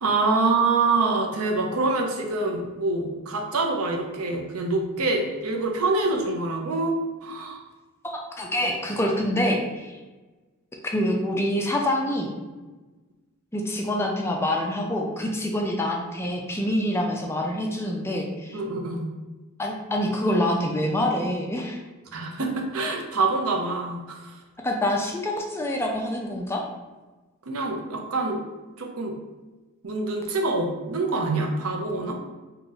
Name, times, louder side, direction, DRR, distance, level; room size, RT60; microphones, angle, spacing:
voice 1, 0.0-7.6 18.5-19.0 22.1-24.4 27.5-28.4 28.8-29.2 29.8-32.1, right 3 dB, 75° right, 2 dB, 0.6 m, -25 dB
voice 2, 8.0-10.0 10.8-12.3 13.5-18.6 19.6-21.8 24.6-26.6, left 1 dB, 10° left, 0 dB, 0.3 m, -26 dB
2.8 x 2.4 x 3.9 m, 1.2 s
head